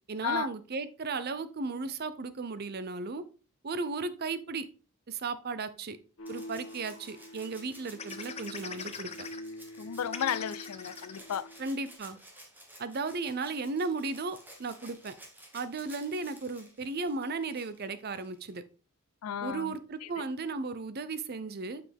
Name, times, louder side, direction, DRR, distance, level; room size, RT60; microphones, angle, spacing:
voice 1, 0.1-3.2 3.6-4.7 5.1-6.0 6.3-9.1 11.6-12.2 12.8-15.1 15.5-18.6 19.4-21.8, right 3 dB, 45° right, 0.6 m, -35 dB
sound 1, 6.2-11.9, equal, 60° left, 1.4 m, -46 dB
Rattle (instrument), 6.3-18.6 20.0-20.1, right 1 dB, 10° right, 1.3 m, -54 dB
sound 2, 8.0-9.4 9.8-9.9 10.0-11.2 11.8-11.9 12.2-12.4, left 6 dB, 30° left, 0.6 m, -42 dB
voice 2, 9.8-11.5 19.2-19.8 20.0-20.1, left 9 dB, 80° left, 0.4 m, -33 dB
7.2 x 5.9 x 3.4 m
head